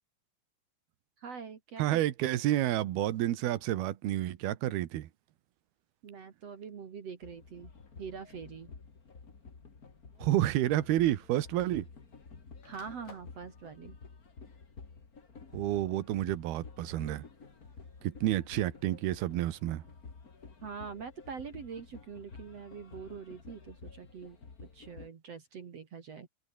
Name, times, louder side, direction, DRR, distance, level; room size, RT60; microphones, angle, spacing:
voice 1, 1.2-2.0 6.0-7.7 8.0-8.7 12.6-14.0 20.6-26.3, right 6 dB, 50° right, 2.7 m, -44 dB
voice 2, 1.8-5.1 10.2-11.8 15.5-17.2 18.0-19.8, right 14 dB, 80° right, 3.3 m, -30 dB
sound 1, 7.2-25.1, left 4 dB, 30° left, 2.2 m, -51 dB
sound 2, 7.8-8.1 9.1-9.2 10.6-10.7 11.0-12.1 12.4-13.4, left 4 dB, 75° left, 10.0 m, -57 dB
omnidirectional pair, 4.4 m